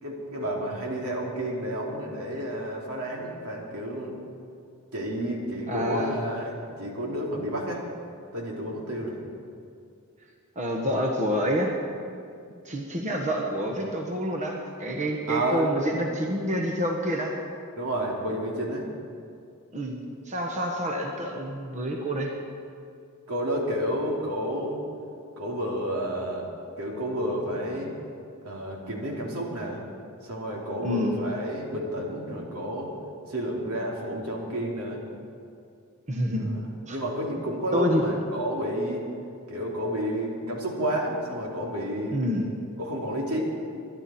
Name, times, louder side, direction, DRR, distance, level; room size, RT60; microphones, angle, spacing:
voice 1, 0.0-4.1 4.9-7.8 8.3-9.2 15.3-15.8 17.8-18.9 23.3-24.8 25.4-26.5 26.8-28.0 28.4-29.8 30.2-32.9 33.3-35.0 36.4-36.6 36.9-39.0 39.5-42.3 42.8-43.4, right 1 dB, 80° right, -1 dB, 2.9 m, -30 dB
voice 2, 5.7-6.2 10.5-11.7 12.6-17.4 19.7-22.3 30.8-31.1 36.1-36.5 36.9-37.0 37.7-38.0 42.1-42.5, equal, 35° right, 1 dB, 1.3 m, -28 dB
24.0 x 11.0 x 4.3 m, 2.4 s
head